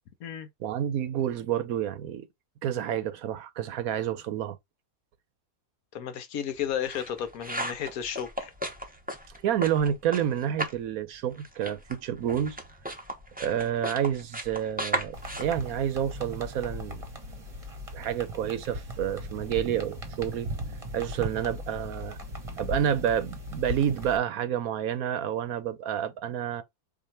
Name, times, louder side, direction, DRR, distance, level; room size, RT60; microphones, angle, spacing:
voice 1, 0.6-2.3 2.6-4.6 9.4-12.6 13.4-17.0 17.9-20.5 20.9-22.2 22.6-26.6, right 9 dB, 75° right, 1.1 m, -29 dB
voice 2, 5.9-8.5, left 9 dB, 70° left, 1.2 m, -33 dB
sound 1, 6.5-10.9 11.1-16.5, right 1 dB, 10° right, 0.5 m, -36 dB
sound 2, 15.1-24.2, equal, 25° right, 1.0 m, -38 dB
4.8 x 2.6 x 4.2 m
omnidirectional pair, 1.6 m